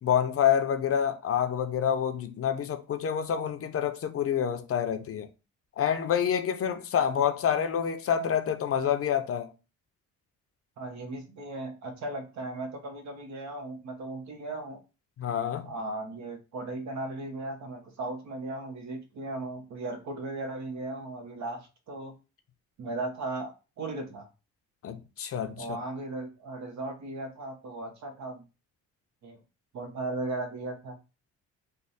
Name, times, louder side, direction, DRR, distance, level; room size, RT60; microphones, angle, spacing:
voice 1, 0.0-5.3 5.8-9.5 15.2-15.7 24.8-25.8, left 8 dB, 50° left, 0.6 m, -27 dB
voice 2, 10.8-14.8 15.6-22.1 22.8-24.3 25.6-28.4 29.2-29.4 29.7-31.0, right 2 dB, 65° right, 1.1 m, -37 dB
3.2 x 2.2 x 4.0 m
cardioid pair, 90°, 30 cm